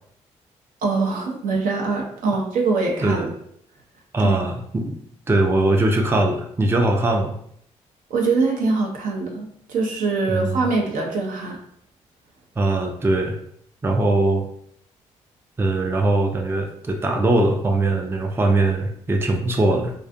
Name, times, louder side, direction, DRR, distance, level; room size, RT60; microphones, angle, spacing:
voice 1, 0.8-3.3 4.2-4.4 8.1-11.6, right 3 dB, 65° right, 0 dB, 0.6 m, -23 dB
voice 2, 4.1-5.0 5.3-7.3 10.3-10.6 12.6-13.4 13.8-14.5 15.6-19.9, right 2 dB, 15° right, 3 dB, 0.4 m, -21 dB
2.4 x 2.3 x 2.5 m, 0.68 s
hypercardioid pair, 45°, 15 cm